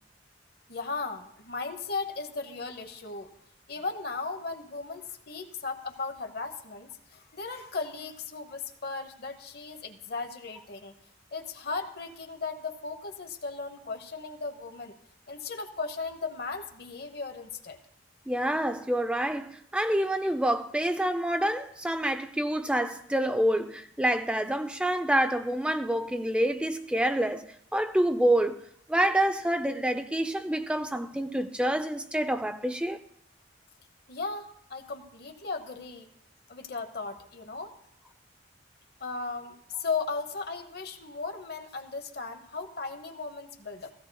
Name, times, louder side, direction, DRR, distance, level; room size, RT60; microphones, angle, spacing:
voice 1, 0.7-3.3 3.7-10.9 11.3-15.0 15.3-17.8 34.1-36.1 36.5-37.7 39.0-43.9, left 4 dB, 60° left, 1.0 m, -36 dB
voice 2, 18.3-27.4 27.7-28.6 28.9-33.0, right 1 dB, 5° right, 0.4 m, -27 dB
16.0 x 14.5 x 2.3 m
head